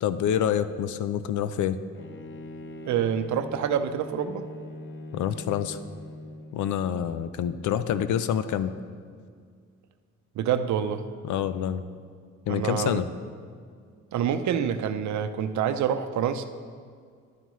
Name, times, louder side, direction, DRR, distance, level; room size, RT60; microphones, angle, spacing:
voice 1, 0.0-1.8 5.1-5.8 6.5-8.7 11.2-11.8 12.5-13.1, left 9 dB, 75° left, 12 dB, 0.6 m, -27 dB
Bowed string instrument, 1.9-6.7, left 2 dB, 40° left, 0.7 m, -42 dB
voice 2, 2.9-4.5 10.4-11.0 12.5-13.0 14.1-16.5, right 8 dB, 70° right, 10 dB, 0.7 m, -27 dB
11.5 x 9.1 x 3.2 m, 2.1 s
cardioid pair, 90°, 30 cm